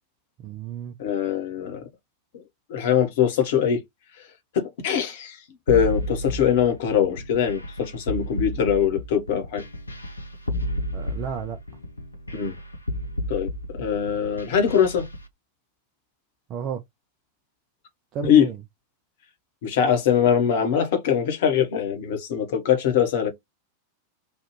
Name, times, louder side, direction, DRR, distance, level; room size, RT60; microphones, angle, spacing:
voice 1, 0.4-1.0 10.9-11.6 16.5-16.8 18.1-18.6, right 7 dB, 35° right, 0.5 m, -32 dB
voice 2, 1.0-1.9 2.3-2.4 2.7-3.8 4.2-4.3 4.5-5.4 5.7-9.6 12.3-12.5 13.3-13.5 13.8-15.1 18.2-18.5 19.6-23.3, left 8 dB, 55° left, 1.0 m, -22 dB
sound 1, 5.7-15.2, left 1 dB, 85° left, 0.6 m, -31 dB
3.2 x 2.3 x 3.0 m
figure-of-eight pair, 90°, 0 cm